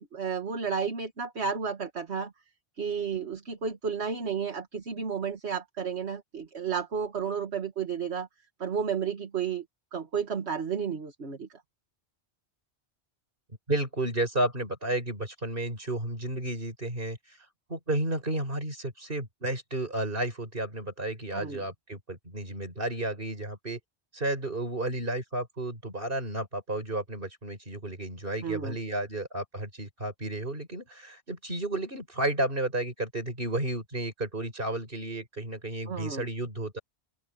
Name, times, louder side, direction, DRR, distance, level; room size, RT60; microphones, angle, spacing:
voice 1, 0.0-2.3 2.8-8.3 8.6-9.6 9.9-11.5 21.3-21.6 28.4-28.8 35.9-36.3, right 6 dB, 75° right, 1.9 m, -32 dB
voice 2, 13.7-17.4 17.7-23.8 24.1-36.8, right 1 dB, 55° right, 5.6 m, -32 dB
open air
omnidirectional pair, 1.1 m